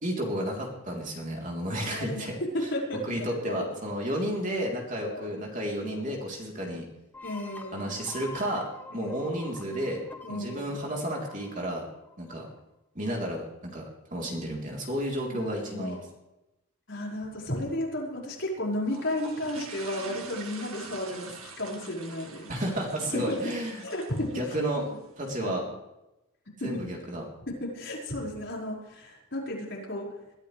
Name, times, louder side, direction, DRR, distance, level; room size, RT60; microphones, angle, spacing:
voice 1, 0.0-2.4 3.1-6.9 7.7-8.7 8.9-10.0 10.3-11.9 12.2-12.5 13.0-16.0 22.5-23.8 24.3-24.8 25.2-25.7 26.6-27.2, right 1 dB, 35° right, -1 dB, 3.7 m, -32 dB
voice 2, 1.8-2.3 2.5-3.7 4.9-5.3 5.8-6.2 7.2-7.9 8.9-9.4 10.2-10.8 15.3-16.0 16.9-22.5 23.1-23.5 23.8-24.4 24.7-25.0 25.4-25.6 26.6-26.8 27.5-30.1, left 1 dB, 55° left, -3 dB, 5.5 m, -34 dB
sound 1, 7.1-12.6, left 2 dB, 10° left, 1.3 m, -46 dB
sound 2, 18.8-25.4, right 4 dB, 85° right, 2.2 m, -45 dB
22.0 x 13.5 x 3.4 m, 0.93 s
head